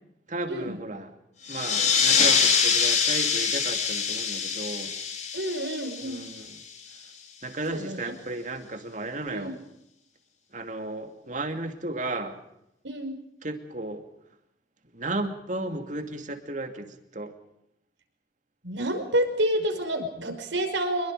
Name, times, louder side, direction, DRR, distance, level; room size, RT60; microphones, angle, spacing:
voice 1, 0.3-1.1 1.5-4.9 6.0-6.6 7.4-9.6 10.5-12.4 13.4-14.0 14.9-17.3, right 2 dB, 40° right, 6 dB, 2.6 m, -34 dB
sound 1, 1.4-6.7, left 6 dB, 40° left, 3.8 m, -25 dB
voice 2, 5.3-6.3 7.7-8.1 9.3-9.6 12.8-13.1 18.6-21.1, right 1 dB, 80° right, 5 dB, 5.4 m, -29 dB
26.5 x 22.5 x 5.0 m, 0.79 s
head